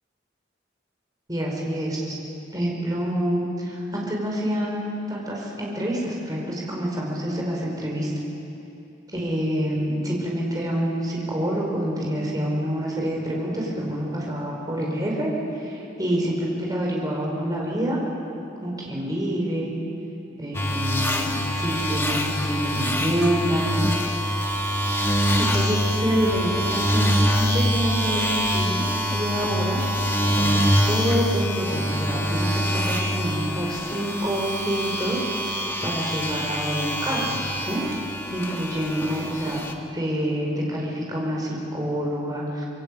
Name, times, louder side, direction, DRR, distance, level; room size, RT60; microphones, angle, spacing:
voice 1, 1.3-2.2 2.5-8.1 9.1-18.0 18.6-19.7 20.4-23.7 25.4-29.8 30.3-37.8 38.3-39.6 39.9-42.7, equal, 20° right, -2 dB, 4.9 m, -27 dB
sound 1, 20.5-39.7, equal, 15° left, 1.5 m, -25 dB
25.5 x 22.0 x 8.9 m, 2.8 s
head